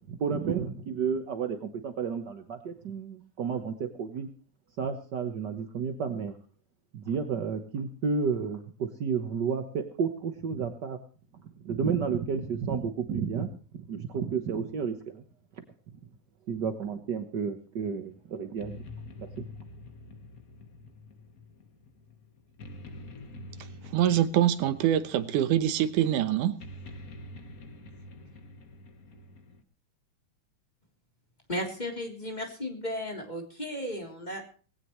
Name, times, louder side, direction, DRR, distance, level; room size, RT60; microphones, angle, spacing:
voice 1, 0.0-4.3 4.8-6.3 6.9-11.0 11.6-13.5 13.9-15.2 16.5-18.8 19.2-19.5, right 6 dB, 55° right, 6 dB, 1.2 m, -31 dB
sound 1, 17.8-29.6, left 2 dB, 40° left, 1.3 m, -47 dB
voice 2, 23.9-26.6, right 11 dB, 85° right, 12 dB, 2.5 m, -24 dB
voice 3, 31.5-34.4, equal, 15° left, 1 dB, 3.4 m, -35 dB
19.5 x 17.5 x 3.2 m, 0.40 s
omnidirectional pair, 3.5 m